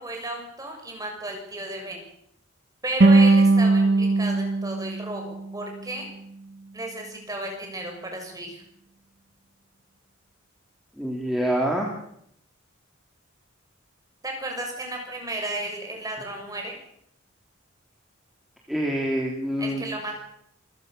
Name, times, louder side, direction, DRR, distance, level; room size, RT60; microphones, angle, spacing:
voice 1, 0.0-2.0 2.8-6.1 6.7-8.6 14.2-16.7 19.6-20.2, right 1 dB, 20° right, 2 dB, 6.7 m, -33 dB
sound 1, 3.0-6.1, right 3 dB, 55° right, 0.9 m, -20 dB
voice 2, 11.0-11.9 18.7-19.8, equal, ahead, -1 dB, 3.3 m, -26 dB
27.5 x 16.0 x 6.9 m, 0.70 s
head